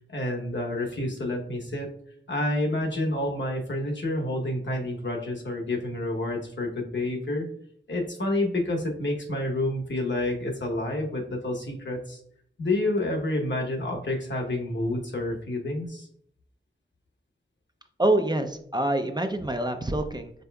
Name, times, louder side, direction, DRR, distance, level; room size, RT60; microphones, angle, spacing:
voice 1, 0.1-1.9 2.3-7.5 7.9-12.2 12.6-16.1, left 1 dB, 65° left, 1 dB, 1.0 m, -29 dB
voice 2, 18.0-20.3, right 1 dB, 20° right, 6 dB, 0.5 m, -26 dB
5.2 x 4.3 x 2.3 m, 0.64 s
wide cardioid pair, 65°, 20 cm